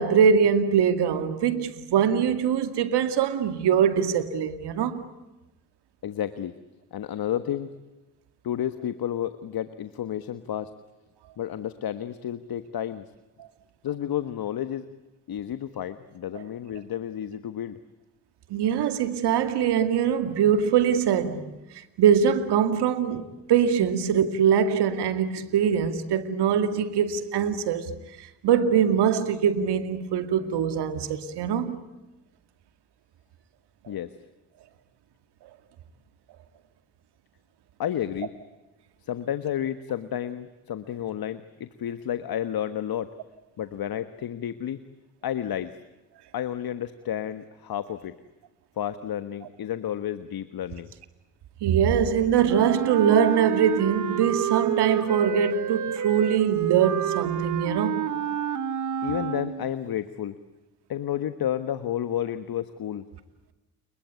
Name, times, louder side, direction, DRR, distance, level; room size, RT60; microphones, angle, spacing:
voice 1, 0.0-5.0 18.5-21.5 22.0-27.9 28.2-31.8 51.6-58.1, right 8 dB, 70° right, 2.2 m, -23 dB
voice 2, 6.0-6.5 6.9-7.7 8.4-10.7 11.4-13.0 13.8-14.8 15.3-17.8 33.9-34.1 37.8-38.3 39.0-43.1 43.6-44.8 45.2-45.7 46.3-48.1 48.8-50.9 59.0-60.3 60.9-63.1, left 10 dB, 60° left, 1.4 m, -31 dB
Wind instrument woodwind instrument, 52.5-59.8, right 9 dB, 45° right, 1.3 m, -29 dB
30.0 x 22.0 x 8.3 m
hypercardioid pair, 50°, 41 cm